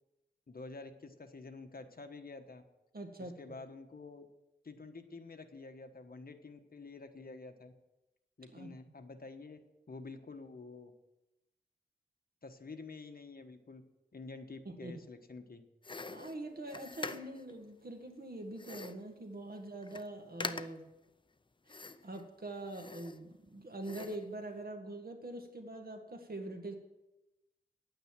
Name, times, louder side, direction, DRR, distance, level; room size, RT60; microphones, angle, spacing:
voice 1, 0.5-2.6 3.2-4.3 4.6-7.7 8.4-9.6 9.9-10.9 12.4-13.8 14.1-15.6, left 3 dB, 60° left, 6 dB, 1.2 m, -49 dB
voice 2, 2.9-3.4 8.5-8.7 14.7-15.0 16.1-20.8 21.7-26.8, right 2 dB, 60° right, 4 dB, 1.9 m, -44 dB
sound 1, 15.8-17.5 18.6-19.1 19.5-19.6 19.8-20.1 20.4-20.9 21.7-22.2 22.7-23.5 23.8-24.3, left 3 dB, 30° left, 0.5 m, -44 dB
9.7 x 9.2 x 7.5 m, 0.97 s
wide cardioid pair, 85°, 18 cm